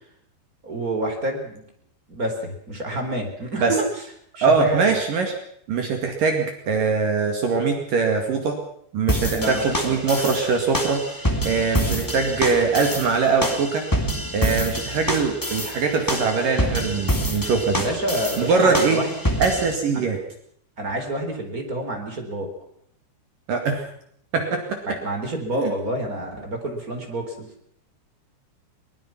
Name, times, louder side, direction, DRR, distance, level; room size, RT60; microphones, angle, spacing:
voice 1, 0.6-1.6 2.1-4.0 4.4-4.9 9.3-10.0 17.8-19.1 19.9-20.1 20.8-22.5 24.9-27.5, right 1 dB, 20° right, 4 dB, 3.7 m, -28 dB
voice 2, 4.4-5.3 5.7-8.6 8.9-11.0 11.4-13.9 14.3-17.8 18.4-19.0 19.4-20.2 23.5-23.9 24.3-25.0 25.6-25.7, right 4 dB, 55° right, 4 dB, 3.5 m, -22 dB
sound 1, 9.1-19.7, equal, 10° left, 1.2 m, -27 dB
23.0 x 20.5 x 6.0 m, 0.67 s
omnidirectional pair, 5.2 m